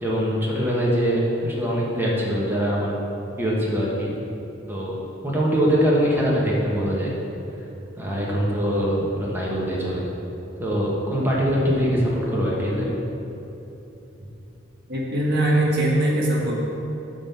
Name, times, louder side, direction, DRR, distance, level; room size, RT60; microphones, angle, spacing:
voice 1, 0.0-2.9 3.4-4.1 4.7-5.0 5.2-7.1 8.0-10.1 10.6-12.9, equal, 10° right, -5 dB, 1.4 m, -23 dB
voice 2, 14.9-16.5, right 1 dB, 60° right, -4 dB, 1.9 m, -21 dB
9.9 x 3.8 x 7.0 m, 3.0 s
head